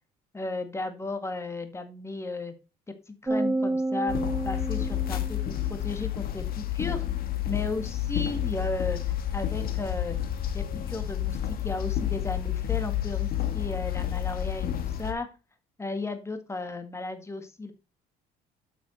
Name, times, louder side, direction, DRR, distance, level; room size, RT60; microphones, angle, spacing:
voice 1, 0.3-2.5 3.1-7.0 7.5-10.2 10.5-13.3 13.5-15.3 15.8-17.7, left 3 dB, 15° left, 8 dB, 1.9 m, -34 dB
sound 1, 3.3-5.8, right 2 dB, 15° right, 1.0 m, -30 dB
sound 2, 4.1-15.1, left 11 dB, 60° left, 1.6 m, -30 dB
8.8 x 6.1 x 4.3 m, 0.30 s
cardioid pair, 110°, 17 cm